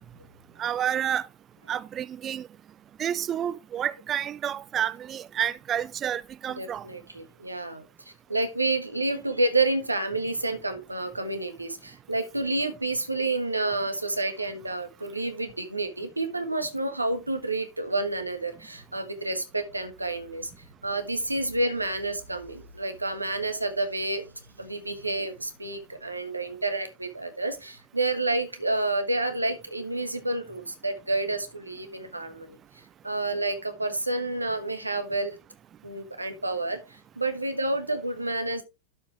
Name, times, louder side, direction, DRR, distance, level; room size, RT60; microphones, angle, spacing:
voice 1, 0.6-1.3 1.7-2.5 3.0-6.9, right 9 dB, 25° right, 0.3 m, -29 dB
voice 2, 6.6-20.5 20.8-24.2 24.6-32.6 33.0-35.3 35.8-38.6, right 2 dB, 85° right, 1.4 m, -29 dB
12.0 x 5.2 x 3.3 m
figure-of-eight pair, 90°, 0 cm